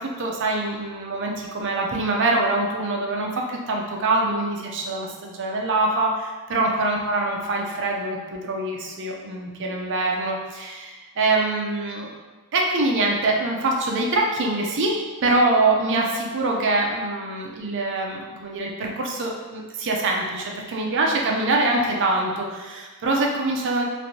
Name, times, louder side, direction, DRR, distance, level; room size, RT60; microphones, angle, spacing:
voice 1, 0.0-12.1 12.5-15.0 15.2-23.8, right 2 dB, 55° right, 0 dB, 0.5 m, -24 dB
3.2 x 2.5 x 2.6 m, 1.3 s
head